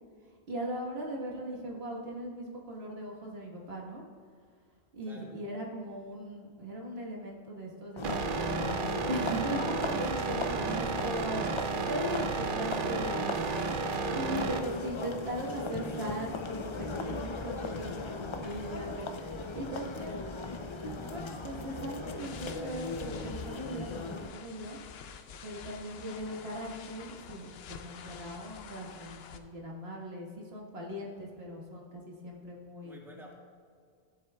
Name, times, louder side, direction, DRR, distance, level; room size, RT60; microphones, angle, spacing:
voice 1, 0.5-4.0 4.9-13.3 14.2-18.9 19.5-20.2 20.9-24.8 25.4-33.3, equal, 75° right, -2 dB, 1.6 m, -39 dB
voice 2, 5.0-5.4 10.0-10.5 32.8-33.3, right 1 dB, ahead, -2 dB, 1.4 m, -52 dB
sound 1, 8.0-24.3, left 3 dB, 45° left, 0.4 m, -38 dB
sound 2, 8.0-14.6, right 4 dB, 60° right, 0.7 m, -33 dB
sound 3, 22.2-29.4, left 6 dB, 75° left, 0.8 m, -48 dB
14.5 x 7.7 x 2.2 m, 2.1 s
omnidirectional pair, 1.1 m